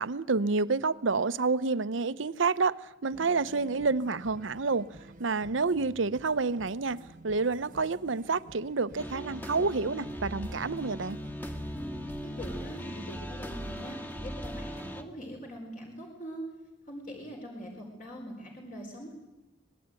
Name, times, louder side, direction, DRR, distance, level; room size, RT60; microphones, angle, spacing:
voice 1, 0.0-4.9 5.2-7.0 7.2-11.2, right 4 dB, 75° right, 0.8 m, -29 dB
sound 1, 3.1-13.9, right 2 dB, 45° right, 1.2 m, -52 dB
sound 2, 9.0-15.0, equal, 10° left, 1.8 m, -39 dB
voice 2, 12.2-16.5 16.9-19.1, equal, 40° left, 4.7 m, -42 dB
25.0 x 20.0 x 9.1 m
head